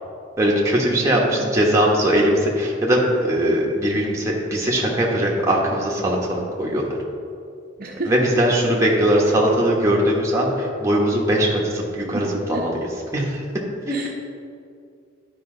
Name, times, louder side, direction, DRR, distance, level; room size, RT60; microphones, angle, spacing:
voice 1, 0.4-6.9 8.0-12.7 13.1-13.4 13.9-14.1, right 1 dB, 15° right, -4 dB, 1.2 m, -20 dB
voice 2, 0.9-1.5 7.8-8.1 12.1-12.2 12.5-12.6 13.9-14.1, right 2 dB, 45° right, -2 dB, 0.8 m, -31 dB
11.0 x 5.3 x 3.9 m, 2.4 s
head